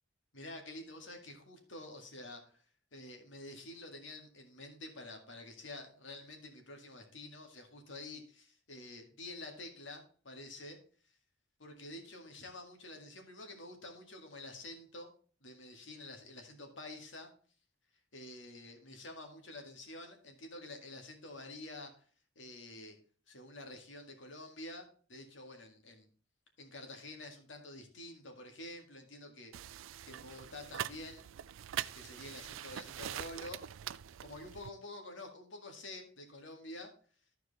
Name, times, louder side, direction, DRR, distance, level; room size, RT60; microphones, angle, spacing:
voice 1, 0.3-2.6 2.9-10.8 11.6-15.1 15.4-17.3 18.1-21.9 22.4-23.0 23.3-24.8 25.1-26.1 26.6-29.5 30.0-31.3 31.9-33.6 34.2-36.9, left 2 dB, 70° left, 4 dB, 1.9 m, -48 dB
sound 1, 29.5-34.7, right 11 dB, 85° right, 0.4 m, -43 dB
13.5 x 4.7 x 4.1 m, 0.42 s
head